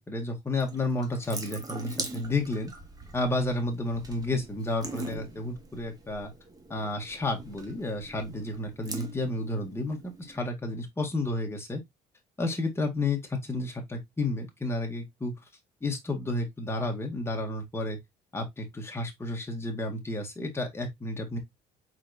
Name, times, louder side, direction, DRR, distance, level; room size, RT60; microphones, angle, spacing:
voice 1, 0.1-2.7 3.1-6.3 6.7-11.8 12.4-15.3 15.8-18.0 18.3-21.4, left 2 dB, 15° left, 1.6 m, -31 dB
Water tap faucet / Sink (filling or washing) / Drip, 0.6-10.4, right 2 dB, 20° right, 1.2 m, -42 dB
4.7 x 4.1 x 2.6 m
cardioid pair, 110°, 17 cm